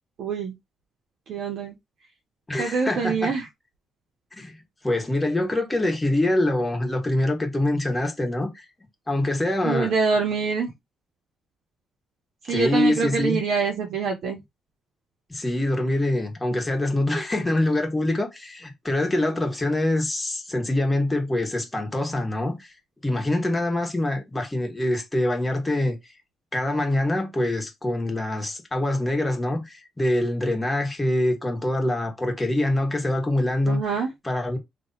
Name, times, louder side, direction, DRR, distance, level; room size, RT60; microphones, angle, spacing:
voice 1, 0.2-0.5 1.3-1.7 2.6-3.4 9.6-10.7 12.4-14.4 33.7-34.1, right 5 dB, 65° right, 1.1 m, -25 dB
voice 2, 2.5-3.3 4.3-4.5 4.8-8.6 9.1-9.9 12.5-13.4 15.3-22.7 23.0-26.0 26.5-34.0 34.2-34.6, left 1 dB, 15° left, 1.4 m, -24 dB
3.2 x 2.6 x 4.0 m
cardioid pair, 105°, 0 cm